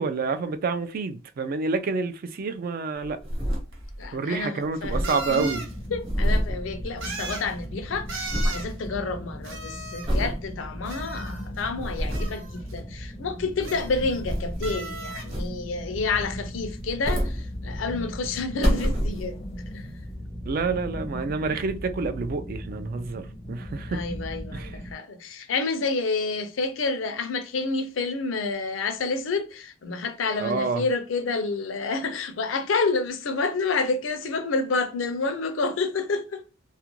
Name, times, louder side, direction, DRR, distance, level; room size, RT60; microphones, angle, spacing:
voice 1, 0.0-3.2 4.1-5.6 20.5-24.0 24.5-24.8 30.4-30.8, right 4 dB, 45° right, 0.3 m, -28 dB
sound 1, 3.0-4.1 4.4-4.5 4.7-7.4 7.7-8.7 9.2-9.5 10.0-10.4 10.9-11.0 11.6-12.4 13.4-14.9 15.3-15.9 16.7-18.0 18.4-19.6 20.1-20.2, equal, 30° right, 0.9 m, -28 dB
sound 2, 3.7-3.8 5.0-5.7 7.0-7.5 8.1-8.7 9.4-10.2 10.9-11.7 12.1-12.7 13.6-14.3 14.6-15.3, right 3 dB, 75° right, 0.7 m, -37 dB
voice 2, 4.0-5.6 5.9-19.4 19.7-19.9 23.9-36.4, left 3 dB, 80° left, 0.5 m, -29 dB
sound 3, 5.4-24.9, equal, 20° left, 0.4 m, -38 dB
2.4 x 2.1 x 2.9 m
head